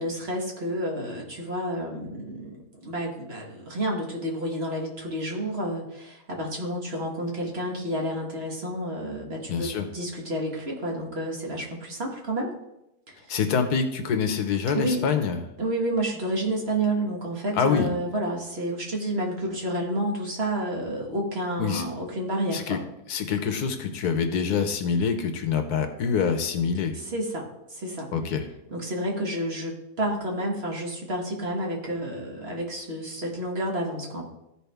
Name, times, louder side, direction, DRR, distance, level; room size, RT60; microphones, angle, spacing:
voice 1, 0.0-12.5 13.1-13.2 14.7-15.1 15.6-22.8 26.9-28.1 28.7-34.3, right 1 dB, 40° right, -1 dB, 1.7 m, -30 dB
voice 2, 9.5-9.9 13.3-15.4 17.6-17.9 21.6-21.8 22.5-22.8 23.1-26.9 28.1-28.4, left 6 dB, 80° left, 7 dB, 1.4 m, -25 dB
14.5 x 4.9 x 3.4 m, 0.88 s
omnidirectional pair, 1.7 m